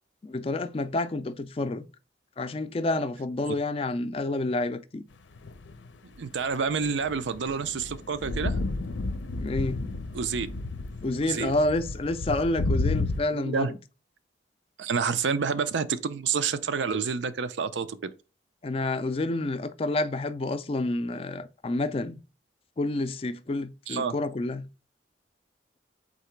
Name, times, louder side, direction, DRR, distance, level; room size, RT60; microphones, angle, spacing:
voice 1, 0.2-1.9 2.4-5.0 9.4-9.8 11.0-13.8 18.6-22.2 22.8-24.7, left 2 dB, 30° left, 0.3 m, -29 dB
sound 1, 5.4-5.9 6.8-13.2, left 2 dB, 90° left, 0.5 m, -31 dB
voice 2, 6.2-8.7 10.1-10.5 11.2-11.5 13.3-13.7 14.8-18.0 23.9-24.2, right 6 dB, 85° right, 0.5 m, -28 dB
4.0 x 2.9 x 4.4 m
head